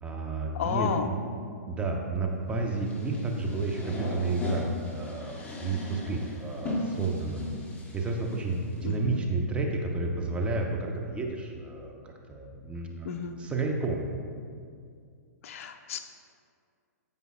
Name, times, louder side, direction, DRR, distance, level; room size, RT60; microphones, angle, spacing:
voice 1, 0.0-1.2 1.7-7.5 7.9-14.1, right 3 dB, 10° right, 0 dB, 0.8 m, -31 dB
voice 2, 0.5-1.1 8.8-9.2 13.0-13.4 15.4-16.0, left 7 dB, 55° left, 6 dB, 0.6 m, -32 dB
sound 1, 2.8-8.9, left 1 dB, 15° left, 1.3 m, -38 dB
14.0 x 5.4 x 2.4 m, 2.2 s
hypercardioid pair, 130°, 9 cm